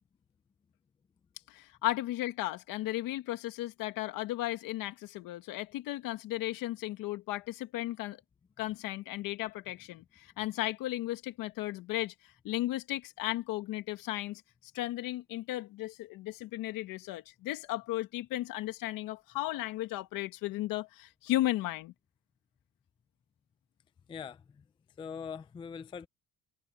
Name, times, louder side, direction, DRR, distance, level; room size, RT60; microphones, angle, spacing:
voice 1, 1.5-8.2 8.6-12.1 12.4-14.4 14.7-21.9, left 16 dB, 70° left, 1.9 m, -35 dB
voice 2, 24.1-24.6 25.0-26.1, left 6 dB, 15° left, 0.4 m, -42 dB
cardioid pair, 160°, 35 cm